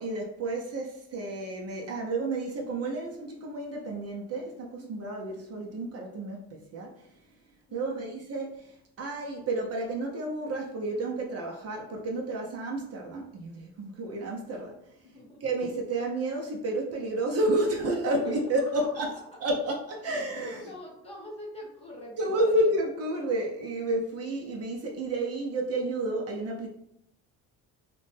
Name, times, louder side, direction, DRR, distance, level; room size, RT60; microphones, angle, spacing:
voice 1, 0.0-7.1 7.7-14.8 15.4-19.1 19.4-20.6 22.2-26.7, right 1 dB, 45° right, 0.5 m, -31 dB
voice 2, 7.7-8.1 15.0-15.5 18.2-19.0 19.3-19.4 20.4-22.7, left 1 dB, 15° left, 1.1 m, -44 dB
2.9 x 2.2 x 3.2 m
cardioid pair, 110°, 35 cm